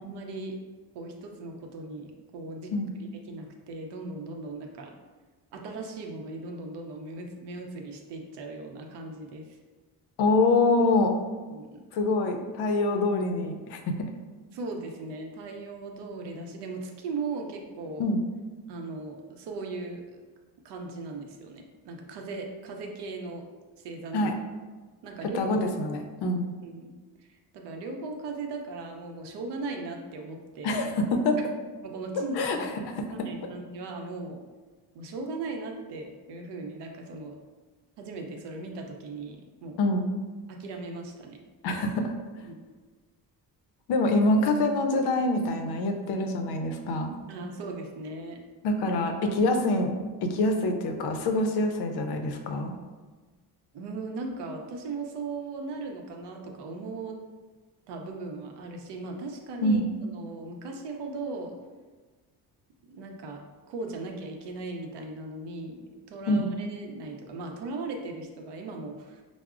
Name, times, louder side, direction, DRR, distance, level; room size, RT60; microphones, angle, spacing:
voice 1, 0.0-0.6 0.9-4.9 5.5-9.6 11.5-11.8 14.5-18.1 18.7-20.2 20.6-23.4 23.8-24.3 25.0-25.4 26.6-27.3 27.5-30.8 31.8-32.6 33.2-34.4 34.9-37.4 38.0-39.8 40.5-41.4 42.4-42.6 47.3-48.4 53.7-57.2 57.9-61.5 62.9-63.4 63.7-69.2, right 3 dB, 85° right, 3 dB, 0.6 m, -38 dB
voice 2, 10.2-11.2 11.9-13.8 18.0-18.2 24.1-24.3 25.3-26.5 30.6-31.4 32.4-32.6 33.0-33.3 39.8-40.1 41.6-42.1 43.9-47.1 48.6-52.7 59.6-59.8 66.3-66.5, left 2 dB, 75° left, 4 dB, 0.5 m, -25 dB
4.7 x 2.0 x 2.3 m, 1.3 s
cardioid pair, 160°, 40 cm